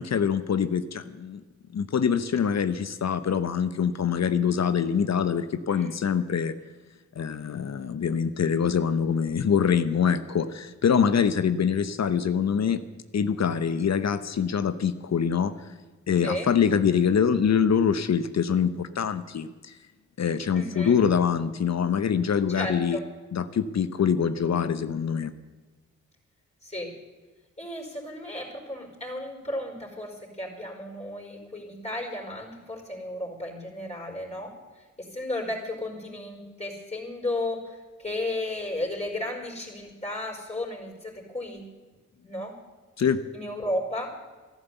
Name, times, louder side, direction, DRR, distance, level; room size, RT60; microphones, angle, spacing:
voice 1, 0.0-1.4 1.7-6.5 7.2-12.8 13.1-15.5 16.1-19.7 20.2-23.0 23.3-25.3 43.0-43.2, left 7 dB, 55° left, 13 dB, 0.9 m, -24 dB
voice 2, 20.5-21.0 22.5-23.0 26.6-26.9 27.6-41.7 42.2-42.6 43.3-44.1, left 1 dB, 20° left, -1 dB, 5.0 m, -34 dB
14.0 x 11.5 x 8.1 m, 1.3 s
cardioid pair, 65°, 32 cm